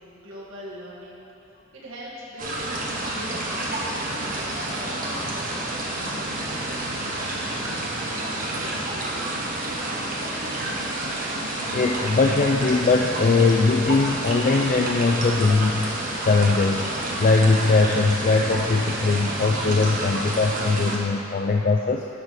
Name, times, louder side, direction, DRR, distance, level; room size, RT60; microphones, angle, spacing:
voice 1, 0.0-10.0, equal, 85° right, -6 dB, 1.7 m, -43 dB
sound 1, 2.4-21.0, right 1 dB, 45° right, 1.1 m, -29 dB
voice 2, 11.7-22.1, left 3 dB, 40° left, 1 dB, 0.4 m, -21 dB
10.5 x 4.1 x 6.5 m, 2.8 s
head